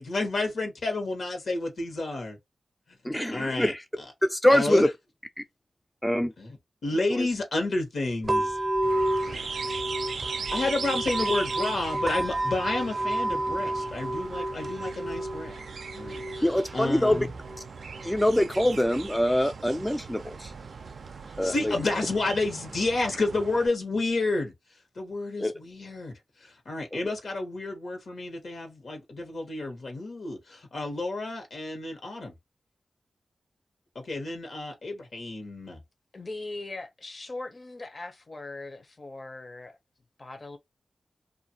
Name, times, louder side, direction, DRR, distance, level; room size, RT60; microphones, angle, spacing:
voice 1, 0.0-2.4 3.0-3.7 4.0-4.1 4.5-4.8 6.4-8.6 9.2-9.5 10.2-15.6 15.9-17.3 21.4-24.5 24.9-26.1 26.4-32.3 33.9-35.8, left 2 dB, 75° left, 1.1 m, -30 dB
voice 2, 3.0-3.8 4.2-4.9 6.0-6.3 7.1-7.3 16.4-17.3 18.0-20.5 21.4-21.7 25.4-25.5 27.0-27.1, left 1 dB, 10° left, 0.3 m, -24 dB
sound 1, 8.2-22.2, right 1 dB, 40° right, 0.6 m, -32 dB
sound 2, 8.8-23.7, right 5 dB, 80° right, 0.3 m, -39 dB
voice 3, 36.1-39.8 40.2-40.6, left 2 dB, 45° left, 0.7 m, -40 dB
2.5 x 2.5 x 2.7 m
wide cardioid pair, 70°, 0 cm